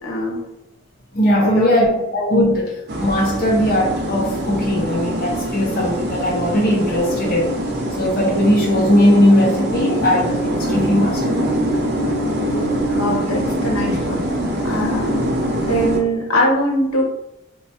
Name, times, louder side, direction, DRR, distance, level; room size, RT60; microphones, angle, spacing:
voice 1, 0.0-0.4 1.4-2.0 12.4-14.3 14.6-15.3 15.6-17.0, equal, 90° left, -1 dB, 0.8 m, -22 dB
voice 2, 1.1-7.6 8.0-11.5, equal, 40° left, -2 dB, 0.5 m, -18 dB
sound 1, 2.9-16.0, right 1 dB, 50° right, 0.5 m, -23 dB
3.0 x 2.1 x 2.8 m, 0.88 s
head